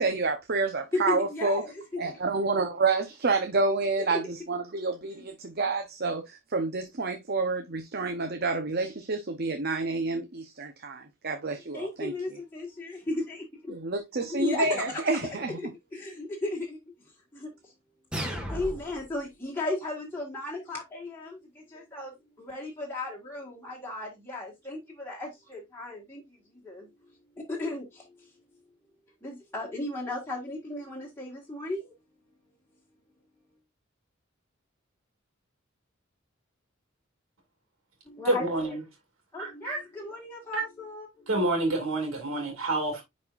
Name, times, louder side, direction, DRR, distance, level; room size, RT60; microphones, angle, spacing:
voice 1, 0.0-1.6 2.0-12.1 13.7-15.6, right 3 dB, 50° right, 0.9 m, -29 dB
voice 2, 0.9-2.1 4.1-4.2 11.7-13.7 14.3-15.0 15.6-16.8 17.3-17.5 18.5-26.2 26.6-26.9 27.4-28.0 29.2-31.9 38.1-38.7 39.3-41.3, left 2 dB, 10° left, 1.7 m, -35 dB
sound 1, 18.1-19.1, equal, 5° right, 1.7 m, -34 dB
voice 3, 38.2-38.8 39.4-39.8 40.5-40.6 41.3-43.0, right 2 dB, 85° right, 2.5 m, -28 dB
10.5 x 4.3 x 2.5 m
head